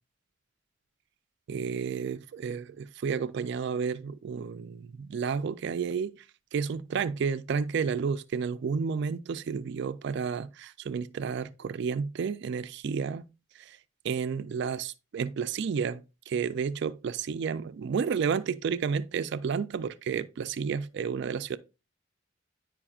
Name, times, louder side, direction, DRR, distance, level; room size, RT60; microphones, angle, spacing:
voice 1, 1.5-6.1 6.5-13.2 13.6-13.8 14.0-21.6, right 6 dB, 60° right, 0.3 m, -31 dB
9.9 x 4.9 x 2.3 m
head